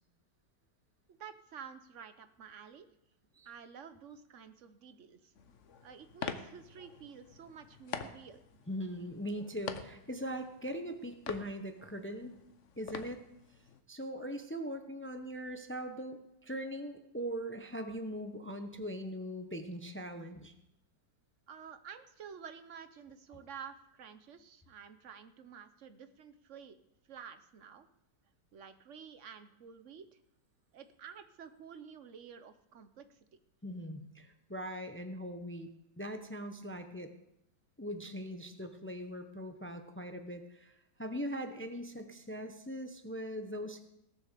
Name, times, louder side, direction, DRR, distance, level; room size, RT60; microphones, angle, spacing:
voice 1, 1.1-2.9 3.4-5.3 5.8-8.4 21.5-26.8 27.0-27.9 28.5-30.2 30.7-33.2, right 7 dB, 55° right, 11 dB, 1.0 m, -50 dB
sound 1, 5.3-13.8, left 7 dB, 50° left, 1.0 m, -46 dB
voice 2, 8.7-12.3 12.8-13.2 13.9-20.5 33.6-35.7 36.0-37.1 37.8-43.8, equal, 20° left, 7 dB, 0.3 m, -41 dB
17.5 x 7.1 x 6.7 m, 0.83 s
omnidirectional pair, 1.9 m